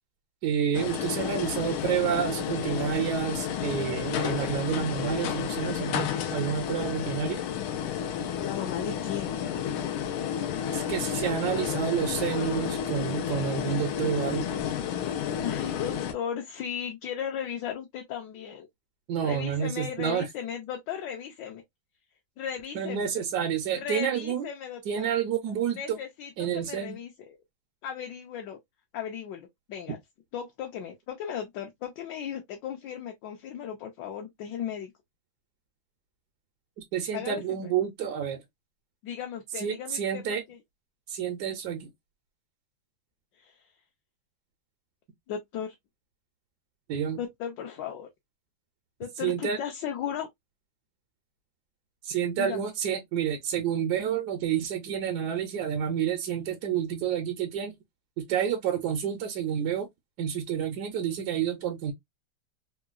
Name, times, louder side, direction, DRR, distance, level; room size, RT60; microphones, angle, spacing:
voice 1, 0.4-7.4 10.7-14.5 19.1-20.3 22.7-24.5 24.9-26.0 26.4-27.0 36.9-38.4 39.6-40.4 41.1-41.9 46.9-47.2 49.2-49.6 52.0-57.8 58.2-59.9 60.2-61.9, right 8 dB, 70° right, 1.0 m, -29 dB
sound 1, 0.7-16.1, left 8 dB, 90° left, 1.4 m, -31 dB
voice 2, 8.4-9.4 15.2-18.7 19.2-21.6 22.4-23.1 23.7-25.1 25.7-27.4 27.8-28.6 28.9-30.0 30.3-34.9 37.1-37.7 39.0-40.6 43.4-43.6 45.3-45.7 47.2-48.1 49.0-50.3 52.4-52.6, left 8 dB, 70° left, 1.2 m, -36 dB
3.7 x 2.2 x 2.3 m
omnidirectional pair, 2.2 m